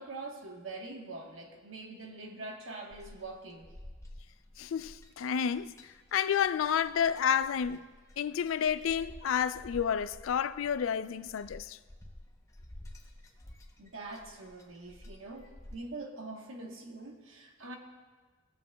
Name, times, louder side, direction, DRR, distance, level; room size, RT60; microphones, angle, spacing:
voice 1, 0.0-3.7 13.8-17.8, right 2 dB, 85° right, 1.1 m, -44 dB
sound 1, 2.9-15.8, left 1 dB, 15° left, 0.7 m, -52 dB
voice 2, 4.6-7.9 8.2-11.8, left 8 dB, 85° left, 0.4 m, -30 dB
19.0 x 7.2 x 2.2 m
head